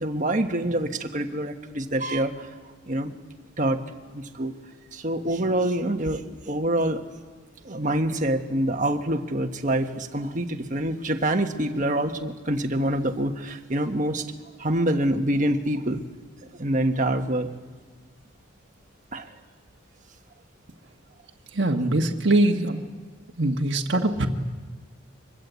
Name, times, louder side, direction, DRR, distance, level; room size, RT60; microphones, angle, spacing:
voice 1, 0.0-2.5 2.9-3.1 3.6-3.8 4.1-4.5 4.9-7.0 7.6-14.3 14.6-16.0 16.5-17.5 19.1-19.3, right 1 dB, 40° right, 5 dB, 1.4 m, -26 dB
voice 2, 21.5-22.8 23.4-24.3, right 1 dB, 55° right, 2 dB, 1.5 m, -22 dB
24.5 x 21.5 x 8.3 m, 1.4 s
head